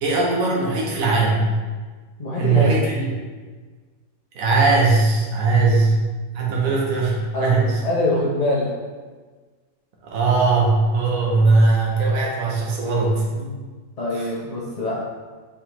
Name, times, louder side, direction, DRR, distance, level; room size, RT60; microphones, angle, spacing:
voice 1, 0.0-1.4 2.4-3.1 4.3-5.9 6.3-7.8 10.0-13.2 14.1-14.3, right 3 dB, 70° right, -3 dB, 1.3 m, -19 dB
voice 2, 2.2-2.7 5.3-5.6 7.3-8.7 13.3-13.6 14.0-15.0, left 2 dB, 35° left, -8 dB, 0.6 m, -24 dB
5.0 x 3.5 x 3.0 m, 1.4 s
omnidirectional pair, 1.5 m